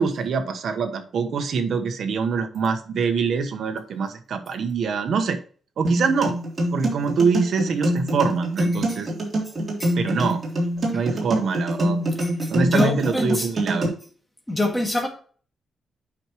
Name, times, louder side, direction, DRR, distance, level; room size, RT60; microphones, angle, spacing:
voice 1, 0.0-5.4 5.8-6.4 6.7-9.1 10.0-10.4 10.9-12.0 12.5-13.9, right 5 dB, 65° right, 7 dB, 1.1 m, -24 dB
sound 1, 5.8-13.8, right 1 dB, 35° right, 3.2 m, -25 dB
voice 2, 12.2-13.5 14.5-15.1, left 1 dB, 5° left, 2 dB, 1.8 m, -26 dB
8.8 x 6.2 x 3.1 m, 0.44 s
cardioid pair, 130°, 0 cm